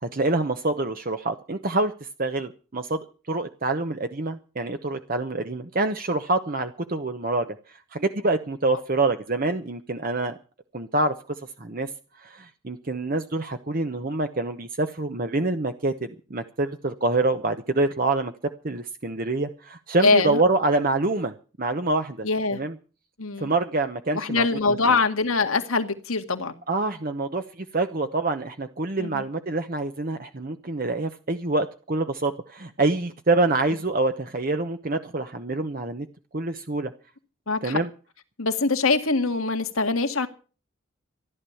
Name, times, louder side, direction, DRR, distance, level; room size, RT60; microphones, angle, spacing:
voice 1, 0.0-1.9 2.2-10.4 10.7-11.1 11.6-11.9 12.2-18.3 18.6-22.3 22.5-22.7 23.4-25.0 26.7-36.1 36.3-36.9 37.6-37.9, right 2 dB, 45° right, 0.9 m, -26 dB
voice 2, 20.0-20.4 22.2-22.6 23.2-23.5 24.1-26.5 29.0-29.2 37.5-37.8 38.4-40.3, left 3 dB, 90° left, 1.9 m, -23 dB
14.5 x 12.0 x 7.1 m
head